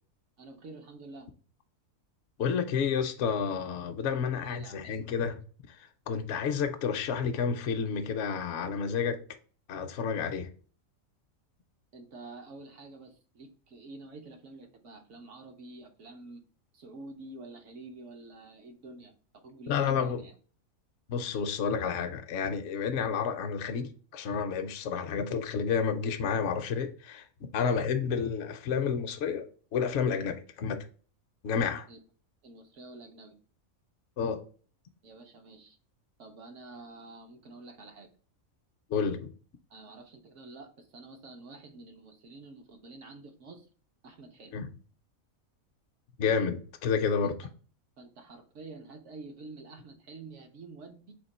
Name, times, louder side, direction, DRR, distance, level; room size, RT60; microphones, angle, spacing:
voice 1, 0.4-1.3 4.4-4.9 11.9-16.4 16.7-20.3 27.6-27.9 31.9-32.0 32.4-33.4 35.0-35.8 36.2-38.1 39.7-43.7 44.0-44.5 47.2-47.3 48.0-51.1, right 3 dB, 65° right, 1.1 m, -48 dB
voice 2, 2.4-5.4 6.1-9.2 9.7-10.5 19.7-20.2 21.1-27.2 27.5-30.8 31.4-31.9 34.2-34.4 38.9-39.3 44.5-44.7 46.2-47.3, left 6 dB, 65° left, 0.8 m, -30 dB
3.6 x 2.9 x 4.1 m
omnidirectional pair, 1.4 m